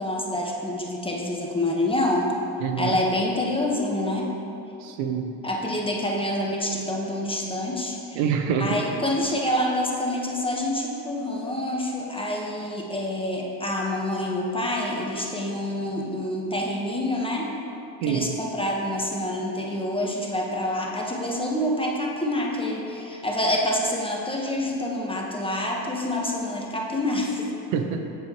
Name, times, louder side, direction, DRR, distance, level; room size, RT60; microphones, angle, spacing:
voice 1, 0.0-2.3 2.8-4.3 5.4-8.3 8.6-17.5 18.1-27.6, left 1 dB, 10° left, -2 dB, 1.3 m, -27 dB
voice 2, 2.6-3.0 4.8-5.3 8.1-8.8 18.0-18.3 27.7-28.1, right 7 dB, 75° right, 5 dB, 0.7 m, -26 dB
7.6 x 7.4 x 3.1 m, 2.9 s
hypercardioid pair, 65°, 48 cm